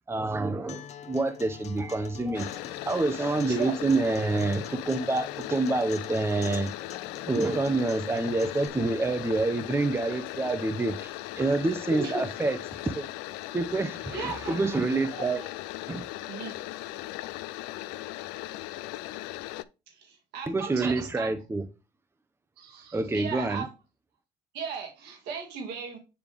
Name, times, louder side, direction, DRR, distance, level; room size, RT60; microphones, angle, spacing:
voice 1, 0.1-6.7 7.3-13.1 13.5-15.4 15.9-16.0 20.5-21.6 22.9-23.6, right 3 dB, 15° right, 0.8 m, -27 dB
Acoustic guitar, 0.7-8.7, left 8 dB, 45° left, 0.8 m, -44 dB
sound 1, 2.3-19.6, left 16 dB, 85° left, 0.4 m, -38 dB
voice 2, 14.1-14.5 15.1-15.5 16.3-16.5 19.9-21.3 22.6-23.7 24.5-26.0, right 5 dB, 80° right, 2.1 m, -36 dB
9.1 x 3.4 x 3.4 m
supercardioid pair, 85°, 17 cm